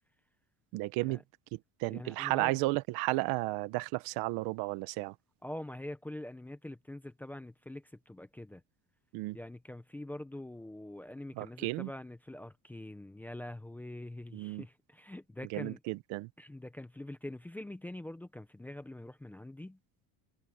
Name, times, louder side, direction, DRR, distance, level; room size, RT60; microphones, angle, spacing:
voice 1, 0.7-1.2 1.5-5.1 9.1-9.4 11.4-11.9 14.3-14.7 15.5-16.3, right 21 dB, 60° right, 1.1 m, -33 dB
voice 2, 1.9-2.5 5.4-8.6 9.3-15.8 16.4-19.8, left 1 dB, 5° left, 0.7 m, -44 dB
cardioid pair, 175°, 41 cm